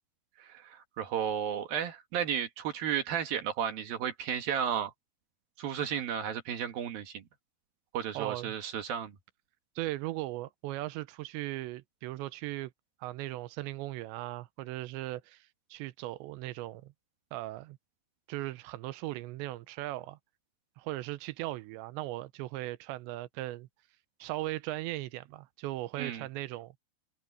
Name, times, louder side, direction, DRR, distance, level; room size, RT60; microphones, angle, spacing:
voice 1, 0.4-4.9 5.6-7.2 7.9-9.1 26.0-26.3, right 9 dB, 60° right, 2.9 m, -33 dB
voice 2, 8.1-8.5 9.8-12.7 13.0-16.9 17.3-17.8 18.3-20.2 20.8-23.7 24.2-26.7, right 17 dB, 85° right, 2.9 m, -38 dB
omnidirectional pair, 5.3 m